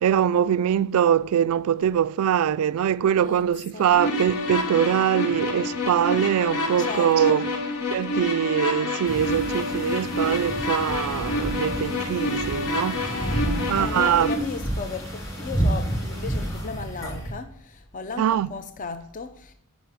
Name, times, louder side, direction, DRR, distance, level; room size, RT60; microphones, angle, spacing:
voice 1, 0.0-7.5 7.9-13.4 13.7-14.3 18.2-18.5, right 9 dB, 80° right, 0.3 m, -23 dB
voice 2, 3.2-3.9 6.8-7.4 13.1-17.5 17.9-19.5, left 4 dB, 35° left, 0.5 m, -35 dB
sound 1, 3.9-14.3, left 2 dB, 75° left, 1.3 m, -28 dB
sound 2, 9.0-17.3, right 1 dB, 15° left, 3.7 m, -30 dB
10.5 x 5.1 x 5.0 m
head